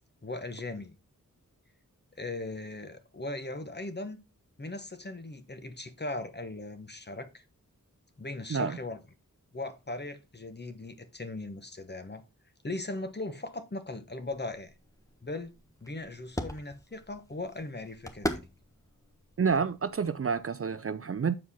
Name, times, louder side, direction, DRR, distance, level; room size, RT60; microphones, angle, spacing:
voice 1, 0.2-1.0 2.2-4.2 4.6-7.4 8.2-9.0 9.5-12.2 12.6-14.7 15.2-15.5 15.8-18.4, left 2 dB, 30° left, 1.1 m, -38 dB
sound 1, 14.2-20.5, equal, 10° left, 1.2 m, -41 dB
voice 2, 19.4-21.4, right 6 dB, 45° right, 0.5 m, -29 dB
7.6 x 4.6 x 4.2 m
wide cardioid pair, 60°, 34 cm